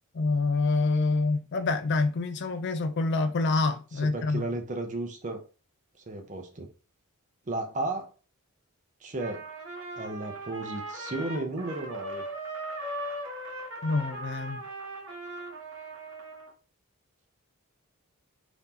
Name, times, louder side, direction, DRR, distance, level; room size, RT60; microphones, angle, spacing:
voice 1, 0.1-4.5 13.8-14.6, left 3 dB, 50° left, 0.4 m, -26 dB
voice 2, 4.0-5.4 6.1-6.7 7.5-8.1 9.0-9.5 9.9-12.2, right 2 dB, 35° right, 0.7 m, -34 dB
Trumpet, 9.2-16.5, right 1 dB, 55° right, 1.0 m, -39 dB
2.9 x 2.6 x 3.6 m
head